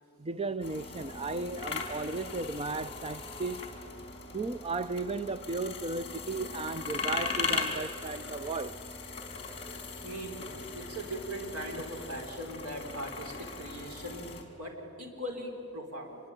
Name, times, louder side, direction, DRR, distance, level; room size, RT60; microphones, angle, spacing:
voice 1, 0.2-3.7 4.3-8.8, right 3 dB, 25° right, 0.5 m, -35 dB
sound 1, 0.6-14.4, left 4 dB, 25° left, 3.7 m, -39 dB
voice 2, 10.0-14.3 14.6-16.2, right 1 dB, 80° right, 4.6 m, -40 dB
26.0 x 22.5 x 9.1 m
head